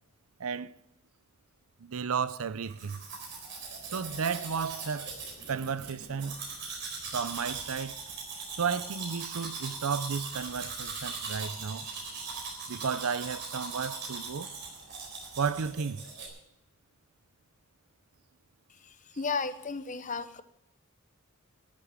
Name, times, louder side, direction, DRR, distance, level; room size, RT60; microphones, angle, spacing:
voice 1, 0.4-0.7 1.8-3.0 3.8-5.2 5.5-6.4 7.1-8.0 8.6-11.9 12.7-14.5 15.4-16.1, right 6 dB, 85° right, 0.6 m, -33 dB
Domestic sounds home sounds, 2.7-16.3, right 4 dB, 50° right, 4.1 m, -40 dB
voice 2, 19.2-20.4, left 4 dB, 35° left, 0.8 m, -33 dB
13.5 x 6.9 x 9.6 m
head